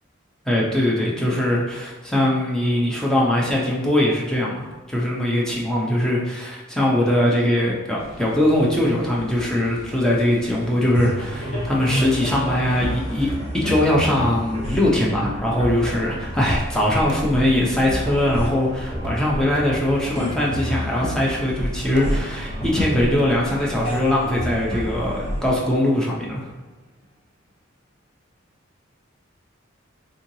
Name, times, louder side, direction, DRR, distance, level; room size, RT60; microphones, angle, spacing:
voice 1, 0.5-13.3 13.5-26.5, left 1 dB, 5° left, -4 dB, 0.6 m, -21 dB
sound 1, 8.0-13.4, left 2 dB, 80° left, 0.5 m, -40 dB
sound 2, 10.9-26.6, equal, 30° left, 1.1 m, -29 dB
sound 3, 15.9-16.2 17.1-17.4 18.1-18.4 19.0-19.3 19.5-19.8 20.5-21.1 22.0-22.4 23.2-23.4, right 1 dB, 60° right, 0.5 m, -36 dB
3.7 x 3.1 x 2.7 m, 1.2 s
head